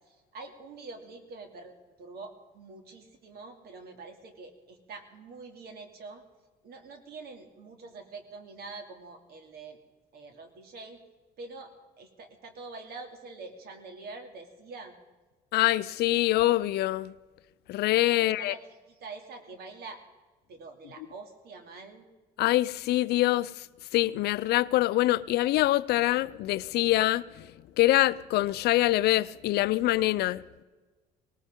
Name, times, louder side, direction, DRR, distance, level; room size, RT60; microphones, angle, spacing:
voice 1, 0.0-6.2 6.6-9.8 10.1-11.0 11.4-14.9 18.2-20.0 20.5-22.1, right 3 dB, 65° right, 2.7 m, -45 dB
voice 2, 15.5-17.1 17.7-18.5 22.4-23.5 23.9-27.5 27.8-30.4, left 16 dB, 75° left, 0.5 m, -24 dB
19.0 x 19.0 x 3.7 m
cardioid pair, 110°, 17 cm